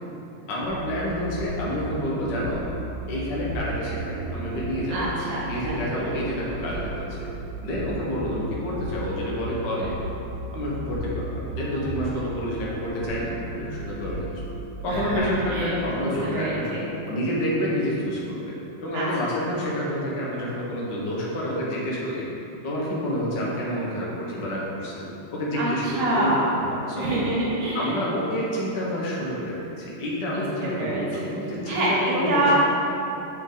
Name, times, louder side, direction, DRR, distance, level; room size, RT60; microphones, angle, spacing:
voice 1, 0.5-2.6 3.1-5.1 5.5-7.3 7.6-9.9 10.5-14.4 14.8-16.8 17.1-18.4 18.8-22.2 22.6-25.1 25.3-26.3 26.6-27.1 27.7-32.6, equal, 50° left, -5 dB, 1.4 m, -28 dB
sound 1, 0.6-15.8, right 2 dB, 70° right, 1.4 m, -36 dB
sound 2, 1.4-1.5 2.4-2.5 3.5-3.6 4.5-4.6 5.6-5.7 6.6-6.7 7.2-7.4 7.7-7.8 8.7-8.8 9.8-9.9 10.9-11.0 11.9-12.0 13.0-13.1 14.0-14.1 14.8-15.2, left 4 dB, 85° left, 3.0 m, -37 dB
voice 2, 4.9-5.8 14.9-16.8 18.9-19.1 25.5-26.5 27.0-27.9 30.3-31.3 31.7-32.5, right 1 dB, 90° right, -8 dB, 2.8 m, -26 dB
7.5 x 6.3 x 4.0 m, 3.0 s
omnidirectional pair, 3.5 m